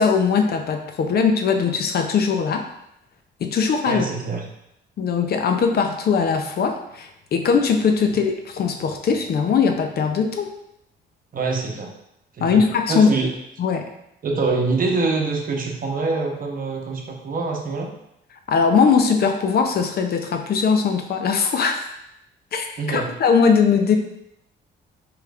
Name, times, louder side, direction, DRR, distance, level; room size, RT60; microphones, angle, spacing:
voice 1, 0.0-2.6 3.4-4.0 5.0-10.5 12.4-13.1 13.6-13.9 18.5-21.9 22.5-24.0, left 5 dB, 50° left, 5 dB, 0.5 m, -20 dB
voice 2, 3.9-4.4 11.3-11.9 12.3-12.6 12.9-13.3 14.2-17.9 22.8-23.1, right 3 dB, 45° right, 1 dB, 0.8 m, -24 dB
4.9 x 3.1 x 2.4 m, 0.80 s
cardioid pair, 90°, 20 cm